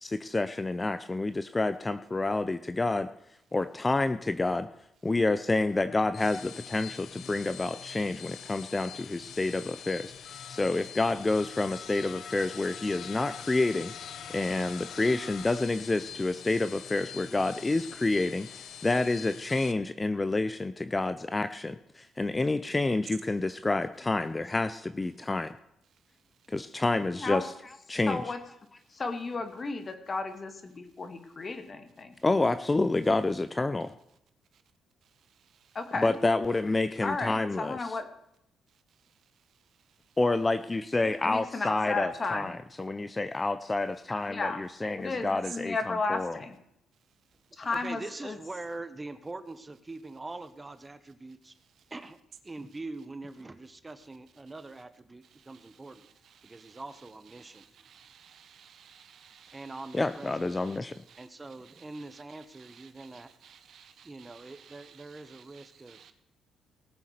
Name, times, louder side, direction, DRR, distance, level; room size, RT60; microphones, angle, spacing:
voice 1, 0.0-3.1 3.5-4.7 5.0-10.1 10.5-13.9 14.3-18.5 18.8-25.5 26.5-27.5 27.9-28.2 32.2-33.9 35.9-38.0 40.2-46.4 59.9-61.0, left 2 dB, 20° left, 12 dB, 0.6 m, -28 dB
sound 1, 6.0-19.7, left 8 dB, 65° left, 0.9 m, -44 dB
voice 2, 27.1-27.4 28.1-28.4 28.9-32.1 35.7-36.1 37.0-38.1 41.2-42.6 44.3-44.6 45.0-46.6 47.6-48.3, left 3 dB, 35° left, 8 dB, 2.1 m, -33 dB
voice 3, 35.4-35.8 45.4-45.6 55.4-56.8 57.3-61.3 61.6-66.1, right 8 dB, 65° right, 9 dB, 1.5 m, -54 dB
voice 4, 47.7-51.5 51.9-52.2 52.4-56.1 56.4-57.7 59.5-60.4 61.2-63.3 64.0-66.0, right 2 dB, 20° right, 12 dB, 1.2 m, -43 dB
18.5 x 7.1 x 6.7 m, 0.80 s
cardioid pair, 90°, 0 cm